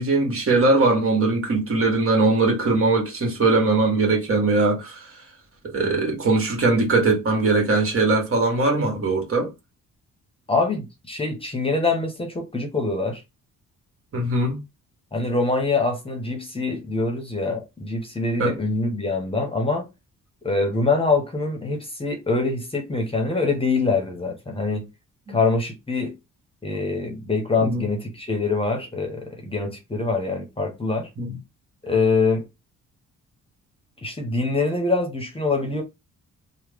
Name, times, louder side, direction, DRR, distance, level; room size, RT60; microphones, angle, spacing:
voice 1, 0.0-5.0 5.7-9.5 14.1-14.6 18.4-18.6 25.3-25.4 27.6-27.8 31.2-31.4, right 3 dB, 45° right, 1.6 m, -20 dB
voice 2, 10.5-13.2 15.1-19.9 20.4-24.9 25.3-26.1 26.6-31.1 31.8-32.5 34.0-35.8, left 3 dB, 20° left, 1.0 m, -24 dB
3.1 x 2.2 x 3.4 m
cardioid pair, 90°, 30 cm